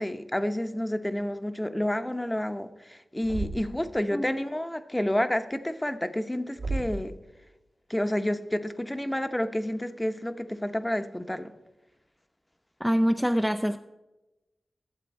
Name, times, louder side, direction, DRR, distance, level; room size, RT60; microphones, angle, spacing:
voice 1, 0.0-7.1 7.9-11.5, left 1 dB, 15° left, 9 dB, 0.8 m, -29 dB
Thump thud, 3.2-3.9 6.6-7.1, right 3 dB, 80° right, 2.7 m, -33 dB
voice 2, 12.8-13.8, equal, ahead, 6 dB, 0.4 m, -25 dB
13.0 x 7.5 x 4.3 m, 1.0 s
cardioid pair, 45°, 0 cm